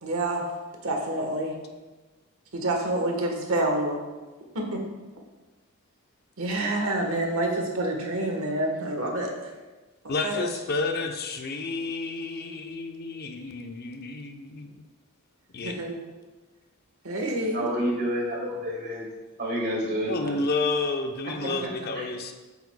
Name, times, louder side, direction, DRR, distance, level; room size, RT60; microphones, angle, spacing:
voice 1, 0.0-0.4 0.8-1.5 2.5-4.0 4.5-4.8 6.4-9.5 10.2-10.5 15.6-16.0 17.0-17.7, right 1 dB, 70° right, 2 dB, 1.2 m, -27 dB
voice 2, 10.1-14.8 15.5-16.0 20.1-22.3, left 3 dB, 45° left, 5 dB, 0.6 m, -30 dB
voice 3, 17.5-19.1 19.4-20.4 21.4-22.1, equal, 50° right, -3 dB, 2.0 m, -30 dB
8.0 x 7.1 x 2.2 m, 1.2 s
head